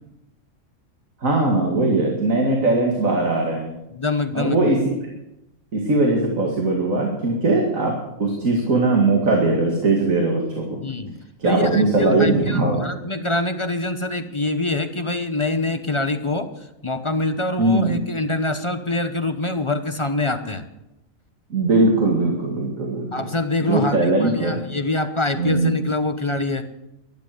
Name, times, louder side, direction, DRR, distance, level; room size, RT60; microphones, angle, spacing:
voice 1, 1.2-3.7 4.3-4.8 5.7-7.9 8.2-10.8 11.4-12.8 17.6-18.0 21.5-23.3 23.6-24.6 25.3-25.8, right 2 dB, 80° right, 0 dB, 2.6 m, -20 dB
voice 2, 3.9-4.6 10.8-11.2 11.4-16.5 16.8-20.6 23.1-26.7, left 2 dB, 25° left, 8 dB, 0.9 m, -25 dB
12.5 x 12.0 x 7.8 m, 0.88 s
omnidirectional pair, 1.4 m